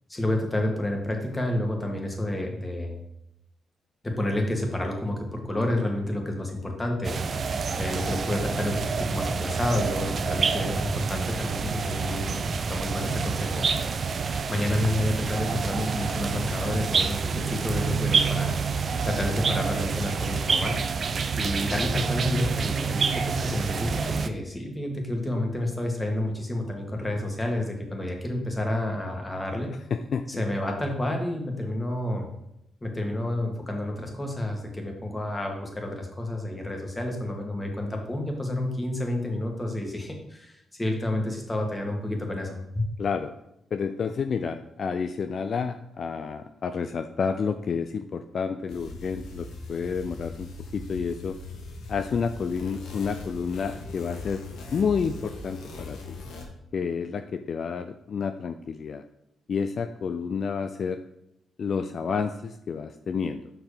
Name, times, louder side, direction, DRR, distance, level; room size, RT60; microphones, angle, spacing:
voice 1, 0.1-3.0 4.0-7.2 7.8-12.4 12.7-13.7 14.5-18.6 19.0-20.8 21.4-29.7 30.4-32.3 32.8-42.8, left 1 dB, 20° left, 2 dB, 1.8 m, -29 dB
sound 1, 7.0-24.3, right 5 dB, 55° right, 0.5 m, -28 dB
voice 2, 29.9-30.4 43.0-43.3 43.7-51.4 51.9-56.2 56.7-59.0 59.5-61.0 61.6-63.5, left 6 dB, 60° left, 8 dB, 0.4 m, -30 dB
sound 2, 48.7-56.4, left 3 dB, 85° left, 1.4 m, -40 dB
5.8 x 4.7 x 5.0 m, 0.80 s
supercardioid pair, 65°, 0 cm